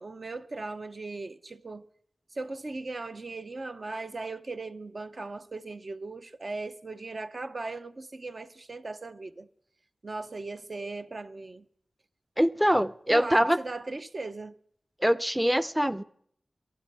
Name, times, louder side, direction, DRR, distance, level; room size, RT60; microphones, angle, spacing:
voice 1, 0.0-1.9 2.3-9.5 10.0-11.7 13.1-14.5, right 3 dB, 55° right, 0.7 m, -38 dB
voice 2, 12.4-13.6 15.0-16.0, equal, 10° right, 0.5 m, -24 dB
23.0 x 8.4 x 4.8 m
cardioid pair, 50°, 0 cm